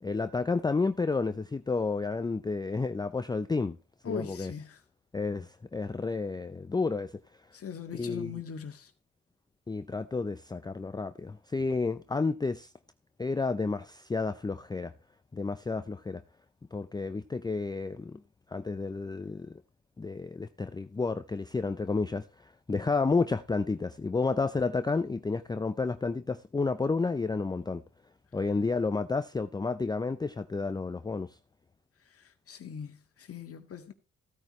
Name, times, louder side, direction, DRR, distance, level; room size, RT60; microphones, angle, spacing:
voice 1, 0.0-3.8 4.0-4.5 5.1-7.2 7.9-8.4 9.7-12.7 13.2-14.9 15.3-16.2 16.7-18.2 18.5-19.6 20.0-27.8 28.3-31.4, left 4 dB, 15° left, 0.5 m, -31 dB
voice 2, 4.0-4.8 7.5-8.9 32.1-33.9, left 7 dB, 50° left, 1.8 m, -41 dB
15.5 x 9.1 x 3.2 m
cardioid pair, 90°, 30 cm